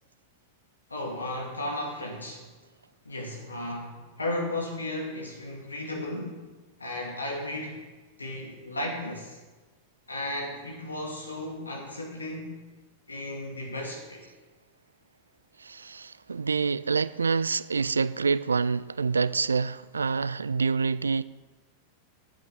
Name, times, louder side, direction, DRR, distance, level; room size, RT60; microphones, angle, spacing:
voice 1, 0.9-2.5 3.0-6.5 6.8-7.8 8.2-9.4 10.1-12.6 13.1-14.3, left 1 dB, 80° left, 2.5 m, -35 dB
voice 2, 15.6-21.2, right 5 dB, 75° right, 0.3 m, -27 dB
8.9 x 8.5 x 7.2 m
figure-of-eight pair, 90°, 0 cm